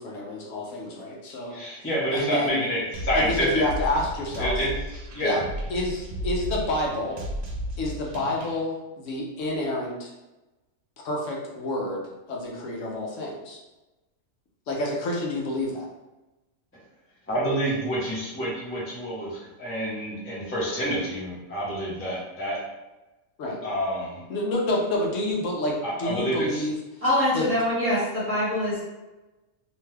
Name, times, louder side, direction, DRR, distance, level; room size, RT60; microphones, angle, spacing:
voice 1, 0.0-2.7 3.1-4.6 5.2-5.4 5.7-7.2 7.8-10.1 11.0-13.6 14.7-15.9 23.4-23.6 24.3-27.0 27.3-27.5, left 1 dB, 75° left, -2 dB, 1.0 m, -29 dB
voice 2, 1.5-3.6 4.4-4.7 5.1-5.4 17.3-22.6 23.6-24.2 25.8-26.7, equal, 15° left, -7 dB, 0.6 m, -28 dB
sound 1, 2.9-8.6, equal, 90° right, 1.0 m, -34 dB
voice 3, 27.0-28.8, left 1 dB, 30° right, -8 dB, 1.0 m, -24 dB
2.9 x 2.2 x 3.2 m, 1.1 s
omnidirectional pair, 1.3 m